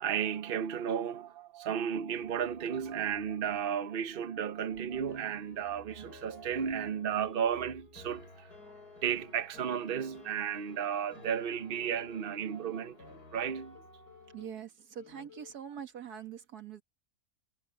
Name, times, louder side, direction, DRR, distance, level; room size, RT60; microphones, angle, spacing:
voice 1, 0.0-8.5 9.0-13.8, right 8 dB, 45° right, 0.9 m, -34 dB
sound 1, 4.4-14.5, left 3 dB, 90° left, 8.5 m, -54 dB
sound 2, 11.2-12.1 12.5-14.7 15.0-15.5, left 6 dB, 45° left, 1.7 m, -56 dB
voice 2, 14.3-16.8, right 8 dB, 80° right, 2.1 m, -44 dB
omnidirectional pair, 1.6 m